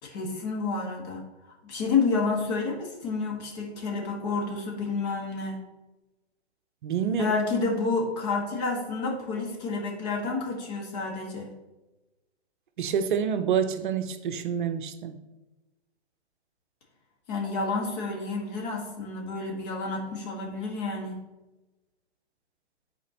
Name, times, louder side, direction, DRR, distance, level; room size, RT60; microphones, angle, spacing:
voice 1, 0.0-1.2 1.6-5.6 7.1-11.5 17.3-21.2, left 4 dB, 40° left, 0 dB, 1.8 m, -29 dB
voice 2, 6.8-7.3 12.8-15.2, right 7 dB, 45° right, 9 dB, 0.7 m, -27 dB
11.0 x 4.4 x 3.0 m, 1.1 s
figure-of-eight pair, 120°, 34 cm